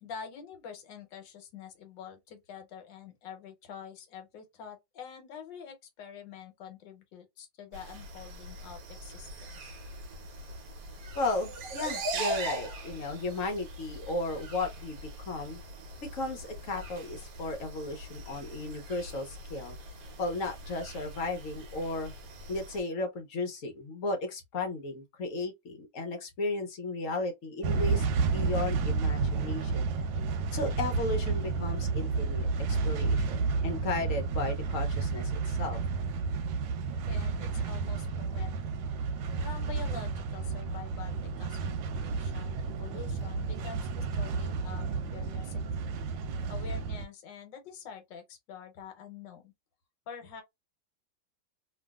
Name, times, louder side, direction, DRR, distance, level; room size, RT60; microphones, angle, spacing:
voice 1, 0.0-9.6 37.1-38.8 39.4-44.8 45.1-45.9 46.5-49.5 50.1-50.4, left 7 dB, 80° left, 1.5 m, -46 dB
sound 1, 7.7-22.8, right 1 dB, 70° right, 1.3 m, -41 dB
voice 2, 11.1-15.6 16.0-19.8 20.2-22.1 22.5-29.9 30.5-35.8, left 2 dB, 55° left, 1.0 m, -35 dB
sound 2, 27.6-47.0, right 4 dB, 90° right, 1.4 m, -31 dB
3.1 x 2.5 x 2.3 m
omnidirectional pair, 2.0 m